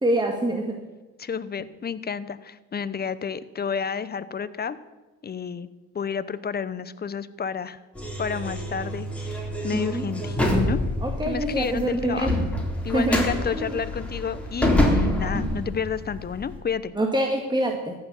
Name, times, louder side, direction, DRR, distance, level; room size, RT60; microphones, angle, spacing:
voice 1, 0.0-0.7 9.7-10.0 11.0-12.4 12.9-13.8 17.0-17.9, right 1 dB, 15° right, 2 dB, 1.8 m, -25 dB
voice 2, 1.2-4.8 5.2-5.7 5.9-7.8 8.2-10.8 11.3-12.3 12.8-16.9, left 6 dB, 30° left, 15 dB, 0.9 m, -30 dB
sound 1, 7.9-16.6, left 1 dB, 5° left, 3.8 m, -26 dB
14.5 x 6.9 x 9.8 m, 1.2 s
cardioid pair, 90°, 30 cm